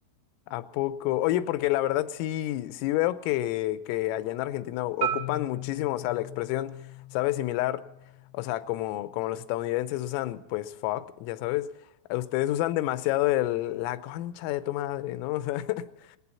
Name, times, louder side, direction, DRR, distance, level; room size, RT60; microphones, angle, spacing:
voice 1, 0.5-6.8 7.1-7.9 8.3-11.7 12.1-16.2, left 15 dB, 85° left, 13 dB, 3.3 m, -29 dB
Marimba xylophone, 5.0-9.2, right 3 dB, 50° right, 2.5 m, -37 dB
19.0 x 18.0 x 4.2 m, 0.89 s
omnidirectional pair, 6.0 m